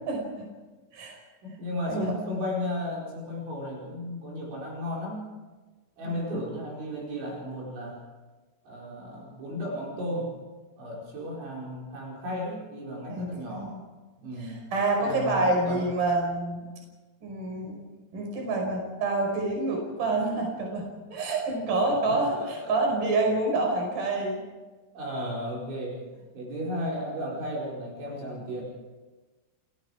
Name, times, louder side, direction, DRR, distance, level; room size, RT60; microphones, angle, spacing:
voice 1, 0.1-0.5 0.9-1.2 1.9-2.1 6.0-6.2 13.1-13.8 14.4-16.7 17.2-17.8 18.1-24.4, right 2 dB, 40° right, 1 dB, 6.6 m, -27 dB
voice 2, 1.4-5.3 6.0-8.0 8.6-10.3 10.8-13.8 14.2-14.6 15.0-15.9 21.7-21.8 22.1-23.0 25.0-26.1 26.3-28.6, left 1 dB, 65° right, -3 dB, 7.1 m, -34 dB
29.0 x 20.0 x 4.9 m, 1.3 s
omnidirectional pair, 5.8 m